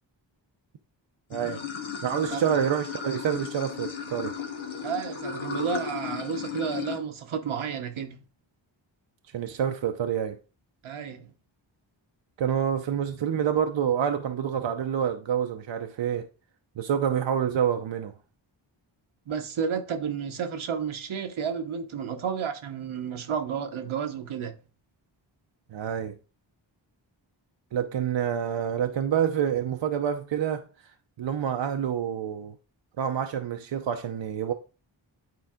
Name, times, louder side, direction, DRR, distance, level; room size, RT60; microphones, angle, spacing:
Water / Sink (filling or washing), 1.3-7.0, left 7 dB, 80° left, 1.1 m, -35 dB
voice 1, 1.3-1.6 2.0-4.3 9.3-10.4 12.4-16.3 16.8-18.1 25.7-26.1 27.7-30.6 31.2-32.5 33.0-34.5, right 8 dB, 65° right, 0.7 m, -27 dB
voice 2, 4.8-8.2 10.8-11.3 19.3-24.6, right 7 dB, 85° right, 1.0 m, -31 dB
9.1 x 3.9 x 3.6 m
cardioid pair, 55°, 47 cm